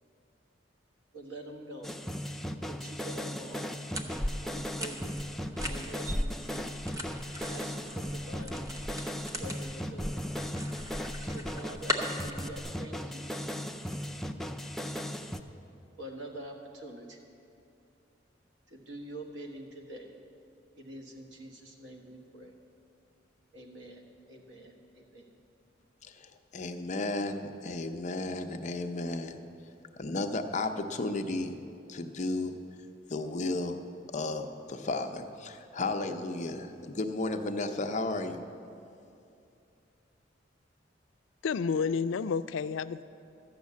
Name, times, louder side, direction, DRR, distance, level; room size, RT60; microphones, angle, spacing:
voice 1, 1.1-2.0 2.7-3.7 4.4-5.1 5.6-6.7 7.4-8.7 9.1-10.2 11.2-13.3 16.0-17.2 18.7-20.1 20.8-22.5 23.5-24.0 24.3-25.2, right 1 dB, 70° right, 0 dB, 1.6 m, -45 dB
sound 1, 1.8-15.4, equal, ahead, 0.4 m, -37 dB
sound 2, 3.9-12.6, equal, 20° right, 0.8 m, -38 dB
voice 2, 26.0-29.4 30.0-31.6 31.9-32.6 33.1-33.8 34.1-38.5, left 2 dB, 40° left, 6 dB, 0.6 m, -33 dB
voice 3, 41.4-43.0, left 5 dB, 85° left, 13 dB, 0.4 m, -30 dB
13.0 x 6.4 x 8.4 m, 2.6 s
head